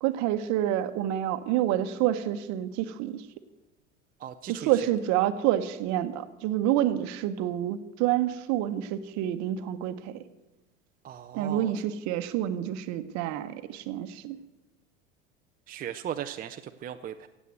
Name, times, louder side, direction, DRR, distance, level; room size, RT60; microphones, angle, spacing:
voice 1, 0.0-3.2 4.5-10.2 11.3-14.4, right 12 dB, 45° right, 11 dB, 1.1 m, -28 dB
voice 2, 4.2-4.7 11.0-11.7 15.7-17.3, right 10 dB, 25° right, 7 dB, 0.6 m, -37 dB
16.0 x 8.4 x 7.8 m, 1.0 s
hypercardioid pair, 85°, 38 cm